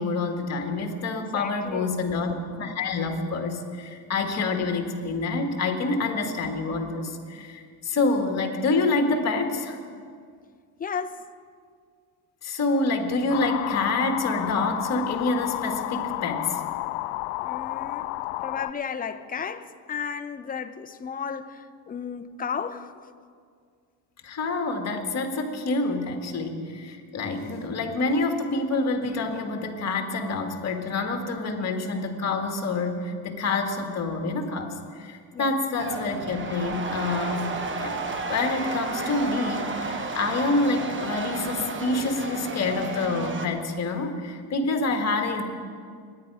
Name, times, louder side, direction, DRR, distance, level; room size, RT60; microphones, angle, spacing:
voice 1, 0.0-9.8 12.4-16.6 24.2-37.5 37.8-38.0 38.3-45.4, left 3 dB, 35° left, 2.0 m, -27 dB
voice 2, 1.1-1.9 10.8-11.2 17.4-18.1 18.4-22.9 35.3-35.5, left 6 dB, 20° left, 0.6 m, -34 dB
sound 1, 13.3-18.7, left 19 dB, 80° left, 0.5 m, -31 dB
sound 2, 35.8-43.5, right 3 dB, 25° right, 1.2 m, -32 dB
24.0 x 10.5 x 4.9 m
cardioid pair, 120°, 43 cm